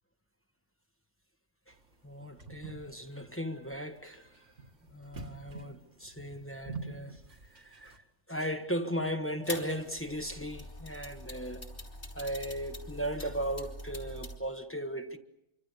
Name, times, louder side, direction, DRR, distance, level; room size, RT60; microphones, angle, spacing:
sound 1, 1.7-8.0, right 3 dB, 85° right, 2.3 m, -47 dB
voice 1, 2.0-4.4 4.9-7.2 7.5-11.7 12.1-15.2, equal, 10° left, 1.3 m, -37 dB
sound 2, 9.4-14.4, left 1 dB, 50° left, 3.7 m, -44 dB
26.5 x 25.0 x 6.8 m
omnidirectional pair, 1.2 m